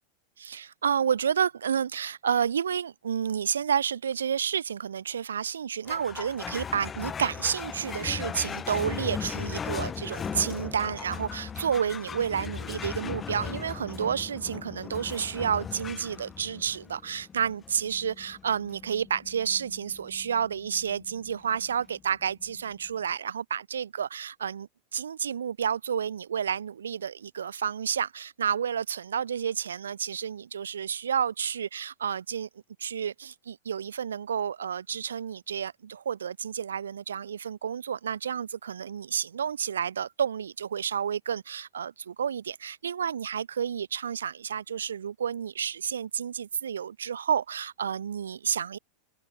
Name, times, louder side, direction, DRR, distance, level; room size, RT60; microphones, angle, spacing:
voice 1, 0.4-32.5 32.8-48.8, right 8 dB, 85° right, 1.3 m, -30 dB
sound 1, 5.9-22.6, left 7 dB, 25° left, 5.7 m, -38 dB
hypercardioid pair, 95°, 0 cm